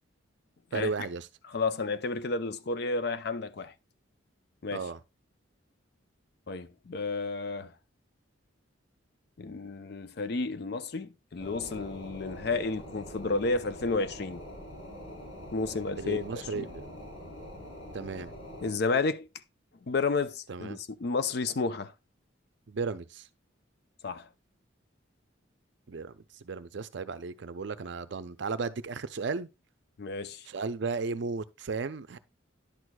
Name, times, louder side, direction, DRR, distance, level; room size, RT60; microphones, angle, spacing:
voice 1, 0.7-1.3 4.7-5.0 16.0-16.9 17.9-18.3 20.5-20.8 22.7-23.3 25.9-26.1 26.4-29.5 30.5-32.2, right 4 dB, 60° right, 0.5 m, -34 dB
voice 2, 1.5-3.7 4.6-4.9 6.5-7.7 9.4-14.4 15.5-16.7 18.6-19.3 19.9-21.9 24.0-24.3 30.0-30.5, left 3 dB, 50° left, 0.5 m, -31 dB
sound 1, 11.4-18.7, left 1 dB, 85° left, 3.5 m, -44 dB
10.5 x 6.3 x 2.3 m
head